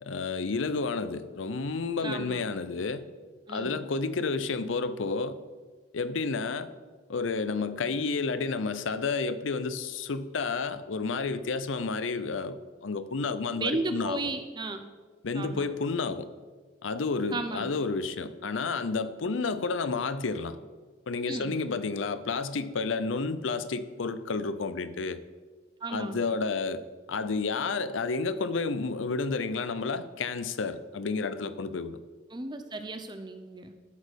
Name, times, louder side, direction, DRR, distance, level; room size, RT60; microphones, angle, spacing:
voice 1, 0.0-3.0 3.5-5.4 5.9-6.7 7.1-14.2 15.2-16.3 16.8-20.6 21.1-25.2 25.9-26.8 27.1-32.0, left 4 dB, 90° left, 13 dB, 0.6 m, -31 dB
voice 2, 2.0-2.4 3.5-3.8 13.5-14.8 15.3-15.7 17.3-17.8 21.3-21.5 25.8-26.4 32.3-33.7, right 2 dB, 25° right, 8 dB, 0.6 m, -34 dB
12.5 x 4.2 x 6.4 m, 1.4 s
head